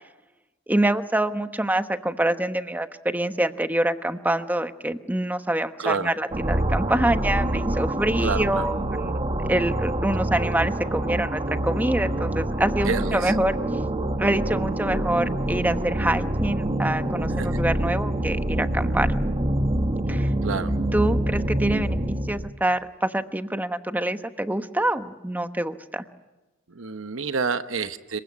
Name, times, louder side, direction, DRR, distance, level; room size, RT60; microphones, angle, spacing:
voice 1, 0.7-9.2 9.5-13.6 14.2-19.1 20.1-20.3 20.9-26.0, right 1 dB, 10° right, 9 dB, 1.1 m, -26 dB
voice 2, 5.8-6.1 8.2-8.7 12.8-13.4 17.4-17.6 20.4-20.7 26.7-28.2, right 5 dB, 70° right, 10 dB, 1.0 m, -28 dB
sound 1, 6.3-22.5, right 1 dB, 30° right, 1.7 m, -26 dB
27.0 x 23.0 x 9.6 m, 1.1 s
head